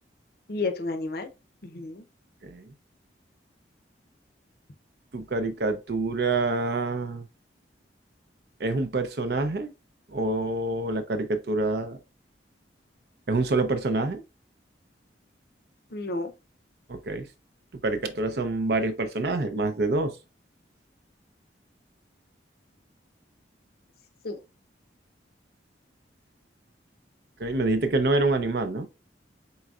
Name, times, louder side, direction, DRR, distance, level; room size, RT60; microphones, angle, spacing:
voice 1, 0.5-1.3 1.6-2.0 15.9-16.3 24.2-24.4, left 3 dB, 55° left, 0.6 m, -31 dB
voice 2, 5.1-7.3 8.6-9.7 10.1-12.0 13.3-14.2 16.9-17.3 17.8-20.2 27.4-28.9, right 2 dB, 60° right, 0.5 m, -26 dB
4.1 x 3.8 x 2.3 m
head